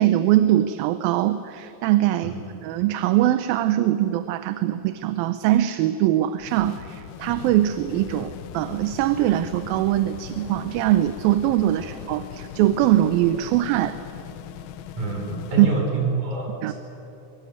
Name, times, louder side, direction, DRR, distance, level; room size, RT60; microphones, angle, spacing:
voice 1, 0.0-2.3 2.6-14.0 15.6-15.7 16.6-16.7, right 13 dB, 80° right, 12 dB, 2.5 m, -22 dB
sound 1, 6.4-15.7, left 10 dB, 85° left, 2.5 m, -39 dB
voice 2, 15.0-16.7, right 2 dB, 55° right, 1 dB, 6.5 m, -27 dB
24.5 x 21.5 x 9.4 m, 2.9 s
omnidirectional pair, 4.2 m